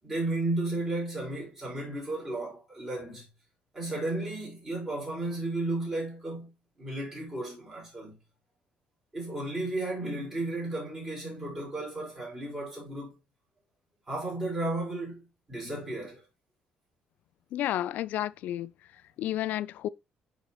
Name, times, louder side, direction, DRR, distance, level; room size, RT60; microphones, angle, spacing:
voice 1, 0.0-3.3 3.7-6.5 6.8-8.2 9.1-13.1 14.1-15.2 15.5-16.2, right 2 dB, 15° right, 5.2 m, -33 dB
voice 2, 17.5-18.7 19.2-19.9, left 13 dB, 75° left, 0.4 m, -31 dB
10.5 x 4.4 x 3.0 m
cardioid pair, 160°, 3 cm